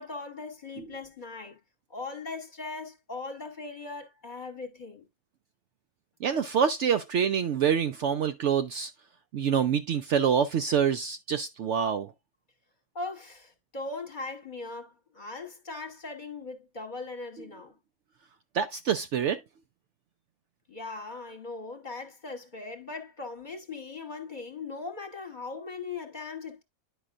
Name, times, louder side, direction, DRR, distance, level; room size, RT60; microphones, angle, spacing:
voice 1, 0.0-1.6 1.9-5.1 12.9-17.8 20.7-26.6, left 3 dB, 35° left, 1.2 m, -39 dB
voice 2, 6.2-8.9 9.3-12.1 18.5-19.4, right 7 dB, 65° right, 0.8 m, -26 dB
10.0 x 5.4 x 2.4 m
omnidirectional pair, 1.5 m